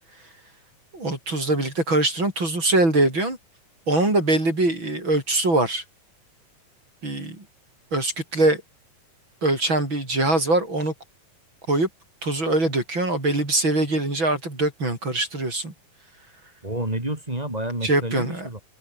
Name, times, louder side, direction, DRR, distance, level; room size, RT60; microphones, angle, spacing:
voice 1, 0.9-3.4 3.9-5.8 7.0-7.4 7.9-8.6 9.4-10.9 11.7-11.9 12.2-15.7 17.8-18.5, right 2 dB, 35° right, 7.6 m, -22 dB
voice 2, 16.6-18.6, right 1 dB, 10° right, 3.6 m, -29 dB
omnidirectional pair, 3.9 m